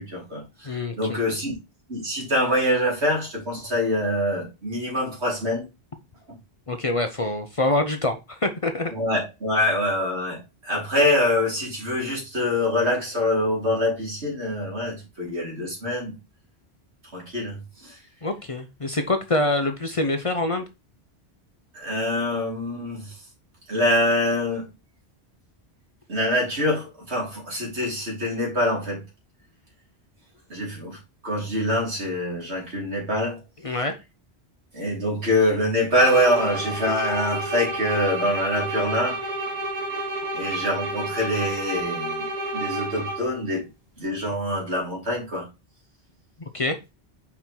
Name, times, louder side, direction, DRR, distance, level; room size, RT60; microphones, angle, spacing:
voice 1, 0.0-1.5 1.9-5.7 8.9-16.2 17.1-18.0 21.7-23.2 23.7-24.7 26.1-29.0 30.5-31.0 31.2-33.4 34.7-39.2 40.3-42.3 42.5-43.7 44.0-45.5, left 1 dB, 85° right, 3.4 m, -25 dB
voice 2, 0.6-1.2 6.7-8.9 18.2-20.7 33.6-33.9 46.5-46.8, left 2 dB, 35° left, 0.7 m, -25 dB
sound 1, 35.9-43.4, right 1 dB, 35° right, 2.1 m, -30 dB
5.7 x 4.7 x 4.5 m
omnidirectional pair, 1.1 m